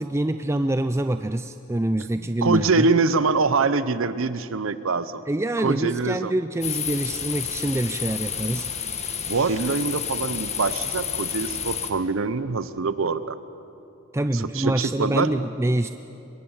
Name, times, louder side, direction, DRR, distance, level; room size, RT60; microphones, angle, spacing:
voice 1, 0.0-2.9 5.3-8.7 14.1-15.9, right 1 dB, 15° right, 9 dB, 0.4 m, -25 dB
voice 2, 2.4-5.2 5.6-6.3 9.3-13.4 14.3-15.3, right 4 dB, 70° right, 13 dB, 0.7 m, -24 dB
sound 1, 6.6-11.9, left 8 dB, 30° left, 1.5 m, -30 dB
24.5 x 22.0 x 7.2 m, 2.8 s
head